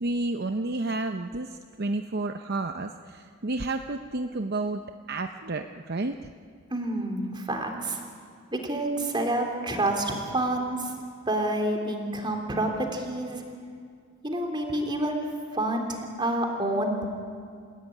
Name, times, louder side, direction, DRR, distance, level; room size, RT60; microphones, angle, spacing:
voice 1, 0.0-6.3, right 2 dB, 50° right, 7 dB, 0.7 m, -31 dB
voice 2, 6.7-8.0 8.5-10.9 11.3-13.4 14.2-15.2 15.5-17.0, right 1 dB, 20° right, 3 dB, 3.3 m, -28 dB
28.0 x 16.0 x 10.0 m, 2.2 s
head